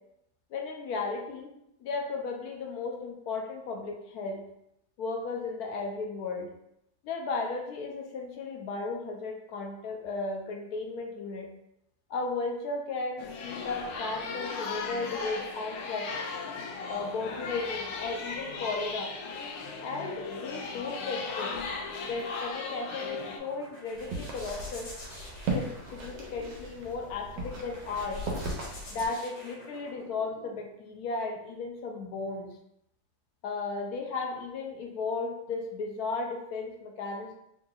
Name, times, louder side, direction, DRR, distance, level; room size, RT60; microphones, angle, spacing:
voice 1, 0.5-1.5 1.8-4.4 5.0-6.5 7.0-11.5 12.1-16.1 16.9-19.2 19.8-21.6 22.0-24.9 25.5-28.3 28.9-32.5 33.4-37.3, left 3 dB, 70° left, 1 dB, 1.0 m, -35 dB
sound 1, 13.2-23.4, left 4 dB, 90° left, 1.3 m, -37 dB
sound 2, 23.0-30.6, left 1 dB, 50° left, 1.5 m, -48 dB
sound 3, 23.9-29.1, right 2 dB, 75° right, 1.4 m, -37 dB
3.9 x 3.6 x 2.3 m, 0.80 s
omnidirectional pair, 1.9 m